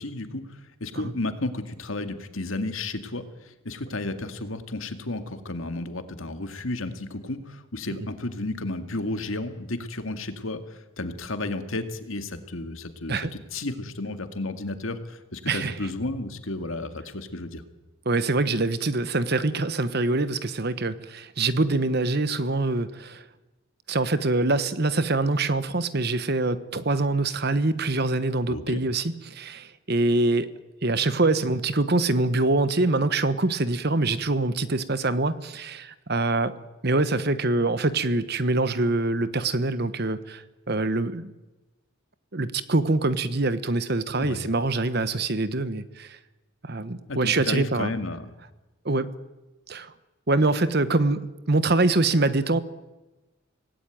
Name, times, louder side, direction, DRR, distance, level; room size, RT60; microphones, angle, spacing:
voice 1, 0.0-17.6 28.5-28.8 44.2-44.4 47.1-48.3, left 2 dB, 70° left, 8 dB, 2.1 m, -33 dB
voice 2, 18.0-23.3 23.9-30.5 30.8-36.5 36.8-41.3 42.3-46.2 46.6-47.9 48.8-49.1 49.7-49.9 50.3-52.6, right 2 dB, 50° right, 13 dB, 1.2 m, -24 dB
26.0 x 18.0 x 9.2 m, 1.1 s
head